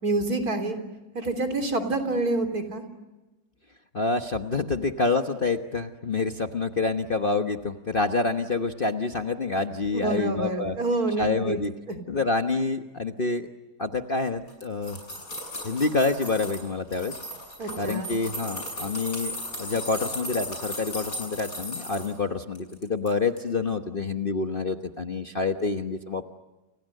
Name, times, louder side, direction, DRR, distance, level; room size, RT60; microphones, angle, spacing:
voice 1, 0.0-0.8 1.1-2.8 9.9-11.6 11.9-12.0 17.6-18.1, right 2 dB, 55° right, 6 dB, 3.8 m, -27 dB
voice 2, 3.9-10.8 11.2-11.7 12.1-13.5 13.8-15.0 15.6-17.2 17.8-26.2, left 3 dB, 35° left, 6 dB, 1.2 m, -27 dB
sound 1, 14.5-16.6 16.9-22.1 22.6-23.1 23.4-23.5, left 1 dB, 50° left, 7.9 m, -36 dB
30.0 x 30.0 x 6.6 m, 1.1 s
omnidirectional pair, 1.9 m